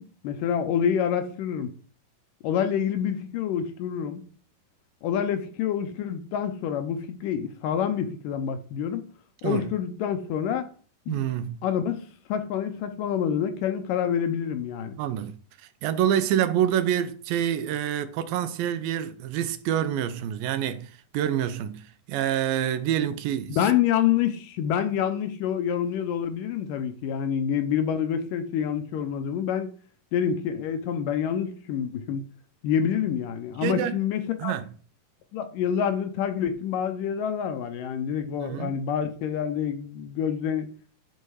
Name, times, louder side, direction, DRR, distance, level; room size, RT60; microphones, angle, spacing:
voice 1, 0.0-1.7 2.4-4.2 5.0-9.1 9.4-10.7 11.1-11.2 11.6-12.0 12.3-15.0 23.5-29.7 30.1-32.2 32.6-34.6 35.3-40.7, left 8 dB, 75° left, 2.3 m, -27 dB
voice 2, 11.1-11.6 15.0-15.4 15.8-23.6 33.6-34.0 34.4-34.6 38.4-38.8, right 10 dB, 85° right, 2.5 m, -27 dB
12.0 x 4.5 x 4.7 m
omnidirectional pair, 4.1 m